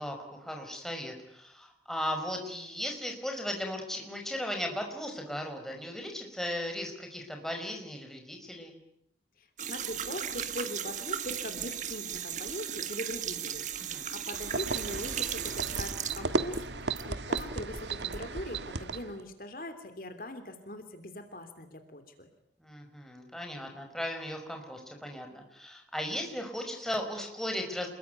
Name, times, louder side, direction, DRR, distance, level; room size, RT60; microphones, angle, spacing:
voice 1, 0.0-8.8 13.8-14.1 22.6-27.9, left 1 dB, ahead, 3 dB, 5.4 m, -37 dB
voice 2, 9.4-22.3, left 1 dB, 50° left, 8 dB, 3.1 m, -41 dB
sound 1, 9.6-17.1 17.4-18.2, right 8 dB, 45° right, 1.6 m, -37 dB
sound 2, 14.3-19.2, right 3 dB, 80° right, 1.6 m, -34 dB
28.5 x 22.0 x 9.5 m, 0.75 s
head